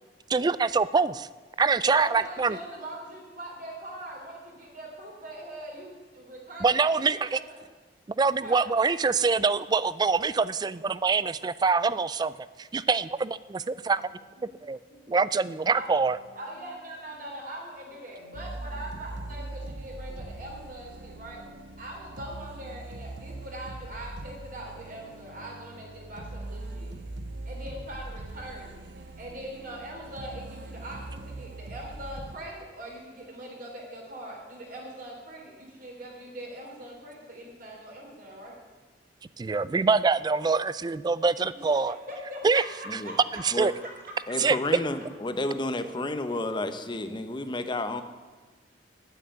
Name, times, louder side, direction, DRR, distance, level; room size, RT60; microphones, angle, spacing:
voice 1, 0.3-1.3 1.6-2.6 6.6-7.4 8.2-14.0 14.6-14.8 15.1-16.2 39.4-42.0 42.4-42.6 42.9-43.0 43.4-43.7 44.4-44.6, right 4 dB, 25° right, 17 dB, 0.3 m, -25 dB
voice 2, 1.8-7.6 8.4-8.7 15.8-15.9 16.3-21.4 21.8-26.9 27.5-38.6 41.5-43.9, right 1 dB, 50° right, -1 dB, 3.6 m, -42 dB
sound 1, 13.8-22.5, equal, 85° left, 2.6 m, -58 dB
sound 2, 18.3-32.4, right 2 dB, 80° right, 0.9 m, -41 dB
voice 3, 44.3-48.0, left 2 dB, 25° left, 9 dB, 0.8 m, -31 dB
9.2 x 9.0 x 8.8 m, 1.3 s
head